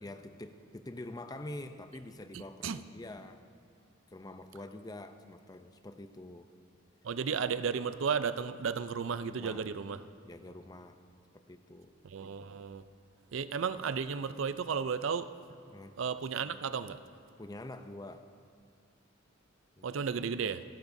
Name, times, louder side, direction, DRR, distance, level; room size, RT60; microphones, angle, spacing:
voice 1, 0.0-3.4 4.1-6.5 9.3-9.7 10.2-11.0 11.3-11.9 15.7-15.9 17.4-18.3 19.8-19.9, left 1 dB, 20° left, 8 dB, 0.5 m, -46 dB
voice 2, 2.3-2.8 7.0-10.0 12.0-12.8 13.3-15.3 16.0-17.0 19.8-20.6, right 6 dB, 75° right, 13 dB, 0.5 m, -34 dB
28.0 x 12.0 x 2.7 m, 2.4 s
head